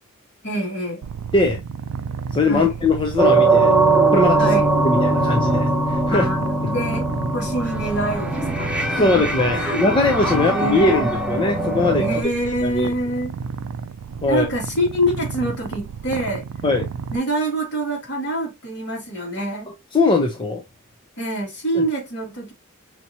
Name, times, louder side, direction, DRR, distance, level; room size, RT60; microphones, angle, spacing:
voice 1, 0.4-1.0 2.5-2.7 4.4-4.7 6.1-6.4 6.7-7.1 7.3-9.1 9.5-9.8 10.5-11.1 12.0-13.4 14.3-16.5 17.1-19.7 21.2-22.5, right 1 dB, 55° left, 2.4 m, -25 dB
Purr, 1.0-17.2, right 6 dB, 80° right, 0.3 m, -32 dB
voice 2, 2.3-3.7 4.1-4.5 4.8-6.3 9.0-12.0 12.6-12.9 14.2-14.5 16.6-16.9 19.9-20.6 21.7-21.9, left 2 dB, 25° left, 0.6 m, -20 dB
sound 1, 3.2-12.2, right 2 dB, 5° right, 0.9 m, -21 dB
5.7 x 2.8 x 2.8 m
head